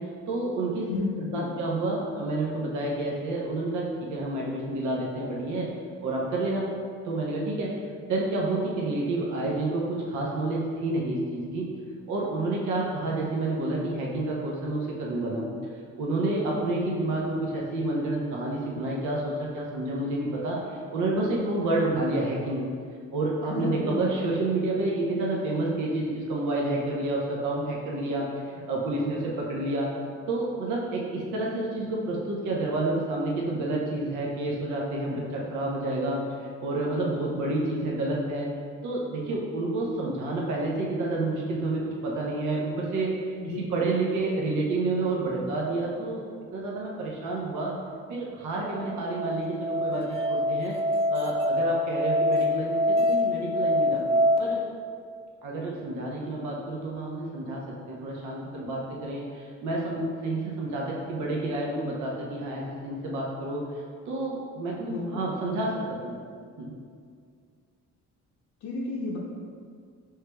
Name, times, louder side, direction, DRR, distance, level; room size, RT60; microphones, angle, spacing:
voice 1, 0.3-0.9 1.2-5.7 6.0-6.7 7.0-7.8 8.1-11.7 12.1-15.5 16.0-22.7 23.1-28.3 28.7-29.9 30.3-36.2 36.6-38.5 38.8-46.2 46.5-47.7 48.1-50.8 51.1-54.6 55.4-63.7 64.1-66.2 66.6-66.7, right 2 dB, 75° right, -3 dB, 0.7 m, -29 dB
voice 2, 0.9-1.5 23.4-24.1 43.4-43.9 64.9-65.2 68.6-69.2, left 3 dB, 75° left, -5 dB, 0.6 m, -32 dB
Musical instrument, 48.7-54.4, left 1 dB, 20° right, 0.5 m, -25 dB
5.5 x 3.2 x 2.2 m, 2.1 s
cardioid pair, 90°, 30 cm